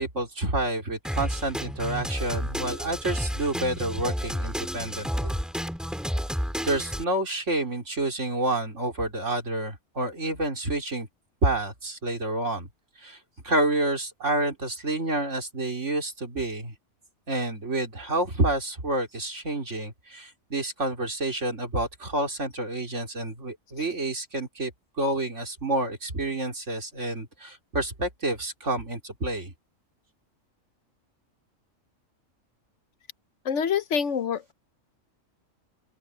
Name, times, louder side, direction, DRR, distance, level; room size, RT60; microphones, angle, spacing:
voice 1, 0.0-5.3 6.6-11.1 11.4-12.7 13.0-13.2 13.4-16.7 17.3-24.7 25.0-29.5, right 2 dB, 65° right, 4.3 m, -29 dB
Drum kit, 1.0-7.0, equal, ahead, 3.0 m, -31 dB
voice 2, 33.4-34.5, left 7 dB, 65° left, 1.1 m, -26 dB
open air
omnidirectional pair, 1.4 m